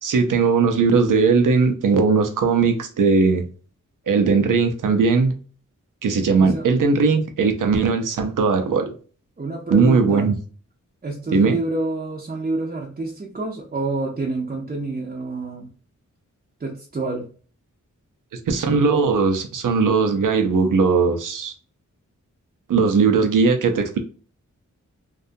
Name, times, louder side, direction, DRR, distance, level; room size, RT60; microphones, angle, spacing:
voice 1, 0.0-3.4 4.1-5.3 6.0-8.9 9.7-10.4 11.3-11.6 18.5-21.5 22.7-24.0, right 4 dB, 85° right, 0.6 m, -18 dB
voice 2, 6.4-6.7 9.4-10.3 11.0-15.7 16.6-17.3, right 2 dB, 30° right, 0.5 m, -28 dB
2.6 x 2.3 x 2.5 m
wide cardioid pair, 90°, 31 cm